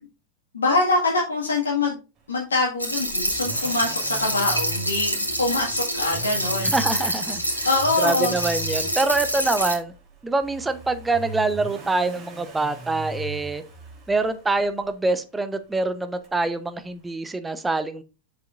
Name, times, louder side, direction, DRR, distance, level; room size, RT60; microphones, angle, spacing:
voice 1, 0.5-2.0 2.3-6.7 7.6-8.4, left 3 dB, 70° left, -2 dB, 1.9 m, -24 dB
sound 1, 2.8-9.7, equal, 85° left, 2.2 m, -26 dB
Accelerating revving vroom, 3.0-14.9 16.2-16.3, right 4 dB, 30° right, 3.4 m, -40 dB
voice 2, 6.6-7.7 8.0-9.9 10.2-13.6 14.1-18.0, right 3 dB, 10° right, 11 dB, 0.9 m, -25 dB
7.8 x 6.8 x 2.5 m, 0.30 s
figure-of-eight pair, 90°, 0 cm